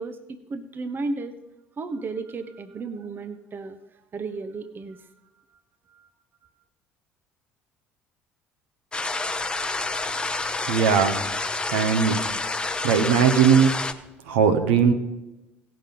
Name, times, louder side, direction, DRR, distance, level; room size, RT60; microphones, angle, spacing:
voice 1, 0.0-1.4 1.8-3.8 4.1-5.1 5.9-6.1, right 3 dB, 35° right, 10 dB, 0.8 m, -33 dB
sound 1, 8.9-13.9, left 3 dB, 15° left, 0.7 m, -28 dB
voice 2, 10.7-11.2 11.7-12.2 12.8-13.7 14.3-14.9, right 7 dB, 70° right, 6 dB, 1.0 m, -19 dB
16.5 x 5.9 x 5.2 m, 0.99 s
figure-of-eight pair, 55°, 6 cm